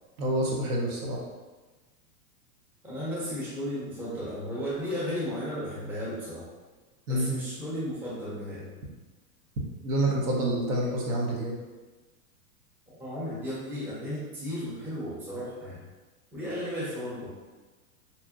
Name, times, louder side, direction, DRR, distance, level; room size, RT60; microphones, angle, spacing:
voice 1, 0.2-1.2 7.1-7.3 9.8-11.6, right 1 dB, 70° right, -2 dB, 0.9 m, -27 dB
voice 2, 2.8-6.4 7.1-8.7 13.0-15.8 16.3-17.3, equal, 5° right, -9 dB, 0.5 m, -34 dB
2.8 x 2.4 x 2.4 m, 1.3 s
hypercardioid pair, 120°, 45 cm